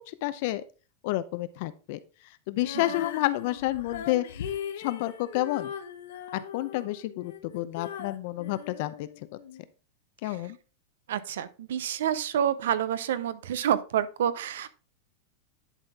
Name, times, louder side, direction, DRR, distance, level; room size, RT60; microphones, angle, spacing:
voice 1, 0.1-0.6 1.0-2.0 2.5-4.2 4.8-5.7 6.3-9.1 10.2-10.6, left 16 dB, 50° left, 14 dB, 0.6 m, -30 dB
Female singing, 2.6-9.6, left 9 dB, 80° left, 1.0 m, -39 dB
voice 2, 11.1-14.7, right 9 dB, 80° right, 15 dB, 0.7 m, -28 dB
11.0 x 4.2 x 3.5 m, 0.35 s
supercardioid pair, 160°, 0 cm